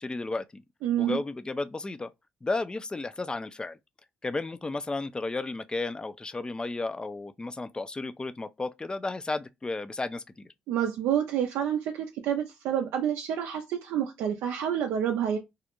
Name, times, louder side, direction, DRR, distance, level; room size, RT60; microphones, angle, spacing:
voice 1, 0.0-0.6 1.0-2.1 2.4-3.8 4.2-10.5, left 3 dB, 20° left, 0.4 m, -33 dB
voice 2, 0.8-1.2 10.7-15.4, right 9 dB, 85° right, 0.3 m, -28 dB
2.4 x 2.1 x 2.9 m
supercardioid pair, 60°, 4 cm